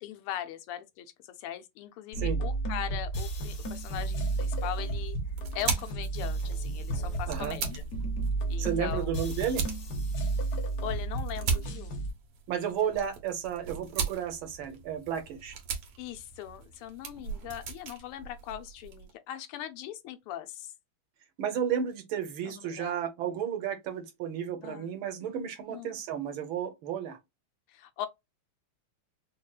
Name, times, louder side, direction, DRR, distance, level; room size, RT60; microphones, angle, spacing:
voice 1, 0.0-5.2 5.5-7.8 8.5-9.1 10.8-12.0 12.6-12.7 16.0-20.7 22.4-23.1 24.6-24.9 25.7-25.9 27.7-28.1, left 11 dB, 80° left, 1.5 m, -40 dB
sound 1, 2.1-12.1, right 3 dB, 55° left, 1.2 m, -32 dB
sound 2, 4.6-19.1, right 5 dB, 90° right, 2.0 m, -38 dB
voice 2, 8.6-9.7 12.5-15.6 21.4-27.2, right 8 dB, 70° right, 1.5 m, -33 dB
5.1 x 2.3 x 2.2 m
omnidirectional pair, 2.4 m